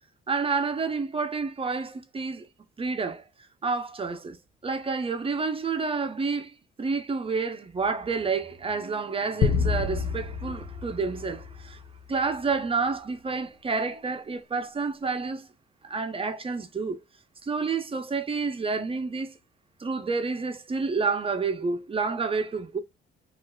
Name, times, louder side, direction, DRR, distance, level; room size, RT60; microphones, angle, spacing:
voice 1, 0.3-2.5 2.8-3.2 3.6-4.4 4.6-11.8 12.1-15.5 15.8-17.0 17.4-19.3 19.8-22.8, right 4 dB, 30° right, 0.6 m, -29 dB
sound 1, 9.4-12.0, left 6 dB, 55° left, 0.6 m, -28 dB
4.2 x 2.5 x 2.3 m
cardioid pair, 90°, 20 cm